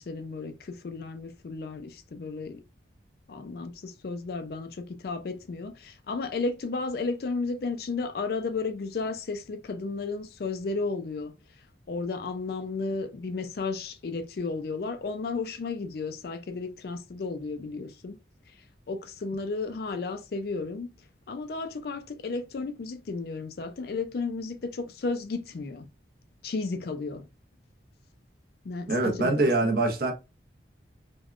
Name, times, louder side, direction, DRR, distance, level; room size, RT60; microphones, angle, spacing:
voice 1, 0.0-2.6 3.3-11.3 11.9-18.2 18.9-20.9 21.3-25.9 26.4-27.3 28.6-29.5, left 3 dB, 55° left, 0.4 m, -33 dB
voice 2, 28.9-30.1, right 2 dB, 50° right, 0.7 m, -24 dB
3.4 x 2.2 x 2.4 m
head